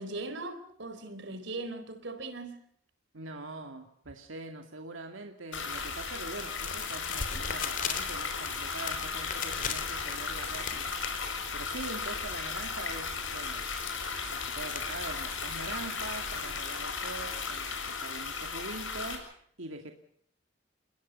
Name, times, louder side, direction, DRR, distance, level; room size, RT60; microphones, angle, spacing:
voice 1, 0.0-2.6, right 2 dB, 65° right, 4.0 m, -39 dB
voice 2, 3.1-10.9 11.5-13.7 14.3-19.9, right 3 dB, 85° right, 2.4 m, -43 dB
sound 1, 5.5-19.1, left 5 dB, 75° left, 7.4 m, -36 dB
sound 2, 5.7-16.6, left 6 dB, 45° left, 3.6 m, -41 dB
29.5 x 20.5 x 5.5 m
head